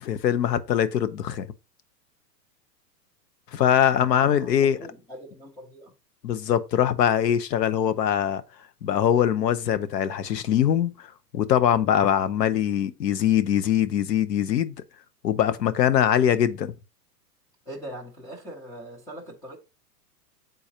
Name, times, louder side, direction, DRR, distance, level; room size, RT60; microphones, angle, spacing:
voice 1, 0.0-1.5 3.5-4.8 6.2-8.4 8.8-11.1 11.3-14.7 15.2-16.7, left 10 dB, 90° left, 0.8 m, -22 dB
voice 2, 3.6-5.9 17.7-19.6, right 1 dB, 10° left, 0.4 m, -41 dB
8.7 x 3.9 x 2.8 m
hypercardioid pair, 125°, 48 cm